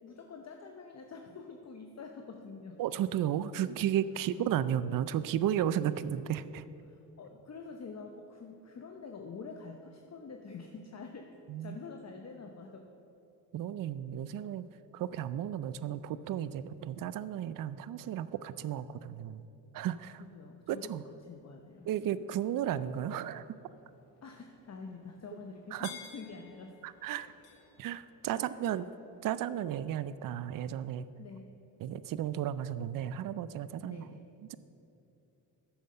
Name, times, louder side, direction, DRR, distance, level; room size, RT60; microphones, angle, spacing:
voice 1, 0.0-2.8 6.8-12.9 14.3-14.5 20.2-21.9 24.2-26.8 27.2-27.3 28.2-28.5 31.2-31.5 33.8-34.3, left 4 dB, 35° left, 4 dB, 0.8 m, -47 dB
voice 2, 2.8-6.6 11.5-11.8 13.5-14.6 14.9-19.5 19.7-20.2 20.7-21.0 21.8-23.5 25.7-25.9 26.8-27.3 27.8-28.9 29.2-31.1 31.8-34.1 34.5-34.6, right 10 dB, 50° right, 15 dB, 0.5 m, -34 dB
sound 1, 19.8-29.5, left 7 dB, 90° left, 1.1 m, -57 dB
10.0 x 7.1 x 5.4 m, 2.8 s
supercardioid pair, 65°, 43 cm